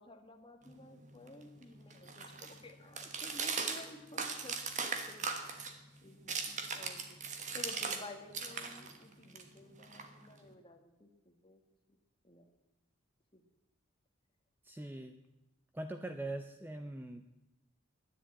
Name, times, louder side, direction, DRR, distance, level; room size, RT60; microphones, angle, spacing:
voice 1, 0.0-5.3 6.0-11.6 11.9-12.0 12.2-12.5 13.3-13.4, left 2 dB, 25° left, 5 dB, 1.5 m, -53 dB
sound 1, 0.7-8.0 8.3-10.5, right 5 dB, 35° right, 1.3 m, -40 dB
voice 2, 14.6-15.2 15.7-17.3, right 2 dB, 10° right, 7 dB, 0.5 m, -42 dB
11.0 x 10.0 x 8.8 m, 0.98 s
head